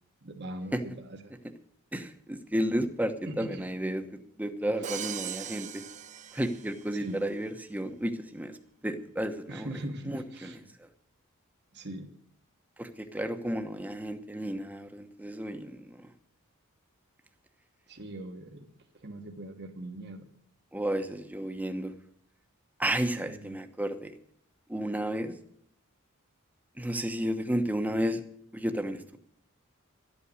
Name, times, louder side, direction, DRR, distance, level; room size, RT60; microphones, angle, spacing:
voice 1, 0.2-1.3 3.3-3.7 4.8-4.9 6.9-7.2 9.5-10.7 11.7-12.1 17.9-18.7 18.9-20.3 23.2-23.6, right 1 dB, 50° right, 3 dB, 1.4 m, -41 dB
voice 2, 1.9-4.1 4.4-5.8 6.3-8.5 8.8-9.7 10.1-10.5 12.8-16.0 20.7-21.9 22.8-24.1 24.7-25.3 26.8-28.2 28.5-29.2, right 1 dB, 10° right, 7 dB, 1.0 m, -32 dB
Crash cymbal, 4.8-7.0, right 9 dB, 35° right, 0.6 m, -40 dB
12.0 x 8.6 x 9.5 m, 0.66 s
head